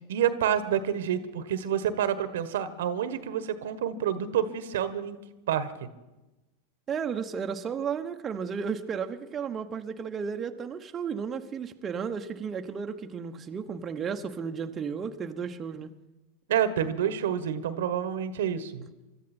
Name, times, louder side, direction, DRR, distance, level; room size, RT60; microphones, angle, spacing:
voice 1, 0.1-5.2 5.5-5.9 16.5-18.9, right 9 dB, 70° right, 12 dB, 1.3 m, -28 dB
voice 2, 6.9-15.9, right 6 dB, 25° right, 5 dB, 1.1 m, -33 dB
25.0 x 13.0 x 4.4 m, 1.0 s
hypercardioid pair, 95°, 0 cm